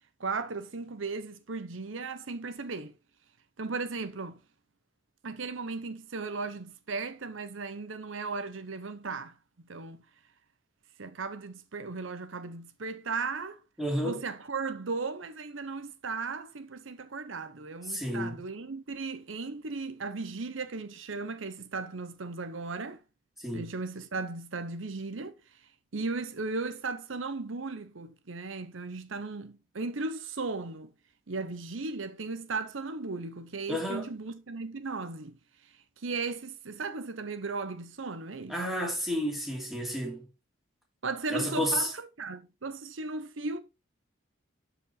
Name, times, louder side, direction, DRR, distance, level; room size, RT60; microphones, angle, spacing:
voice 1, 0.2-2.9 3.6-4.4 5.2-9.3 9.7-10.0 11.0-13.6 14.0-23.0 23.5-25.6 25.9-30.9 31.3-38.6 41.0-43.6, right 4 dB, 80° right, 0.9 m, -36 dB
voice 2, 13.8-14.2 17.9-18.4 23.4-23.7 33.7-34.1 38.5-40.2 41.3-41.9, equal, ahead, 3.0 m, -31 dB
12.0 x 5.1 x 4.3 m
head